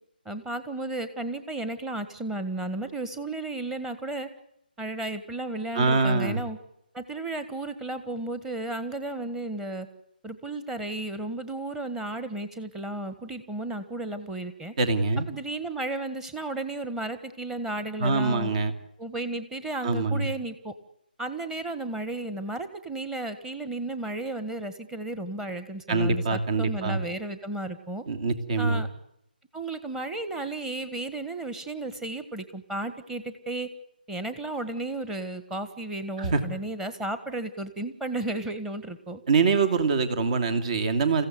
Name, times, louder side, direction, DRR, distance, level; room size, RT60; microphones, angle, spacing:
voice 1, 0.2-4.3 4.8-6.6 6.9-9.9 10.2-14.7 15.3-18.5 19.0-20.7 21.2-28.0 28.6-28.9 29.5-33.7 34.1-39.2, right 2 dB, 5° right, 11 dB, 1.5 m, -33 dB
voice 2, 5.7-6.4 14.8-15.3 18.0-18.7 19.8-20.3 25.9-27.0 28.1-28.8 36.2-36.4 39.3-41.2, right 4 dB, 45° right, 8 dB, 2.8 m, -24 dB
28.5 x 16.0 x 9.5 m, 0.78 s
figure-of-eight pair, 155°, 5 cm